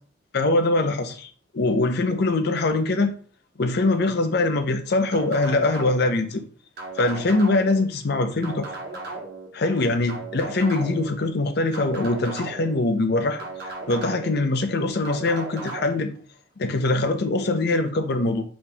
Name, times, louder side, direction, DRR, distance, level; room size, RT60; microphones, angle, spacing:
voice 1, 0.3-3.1 3.6-6.4 7.0-8.7 9.5-13.4 13.9-16.1 16.6-18.4, left 2 dB, 60° left, 8 dB, 0.6 m, -23 dB
sound 1, 5.1-6.2 6.8-7.8 8.4-9.5 10.1-11.1 11.7-12.8 13.4-14.4 15.0-15.9, right 2 dB, 55° right, 1.2 m, -36 dB
4.3 x 2.8 x 3.3 m, 0.43 s
head